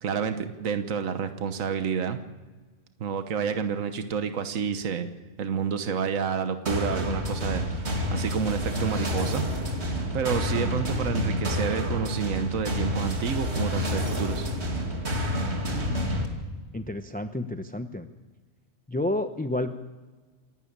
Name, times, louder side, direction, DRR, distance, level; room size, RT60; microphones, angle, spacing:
voice 1, 0.0-2.2 3.0-5.1 5.4-9.4 10.1-14.5, right 6 dB, 70° right, 8 dB, 1.5 m, -29 dB
sound 1, 6.7-16.3, equal, 50° right, 3.0 m, -29 dB
voice 2, 16.7-18.1 18.9-19.7, left 1 dB, 10° left, 8 dB, 0.5 m, -30 dB
27.5 x 12.0 x 8.8 m, 1.3 s
omnidirectional pair, 1.4 m